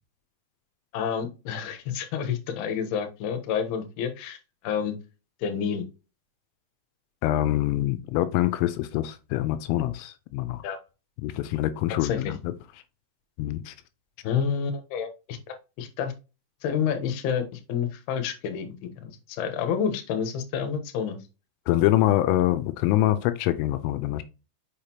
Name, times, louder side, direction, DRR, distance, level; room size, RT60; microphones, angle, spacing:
voice 1, 0.9-4.4 4.6-4.9 5.4-5.8 10.6-10.8 12.0-12.2 14.2-15.4 15.8-16.1 16.6-21.2, left 7 dB, 70° left, 2.6 m, -29 dB
voice 2, 7.2-10.6 11.2-12.4 13.4-13.7 21.7-24.2, left 14 dB, 85° left, 3.2 m, -25 dB
6.6 x 6.1 x 2.9 m
omnidirectional pair, 5.9 m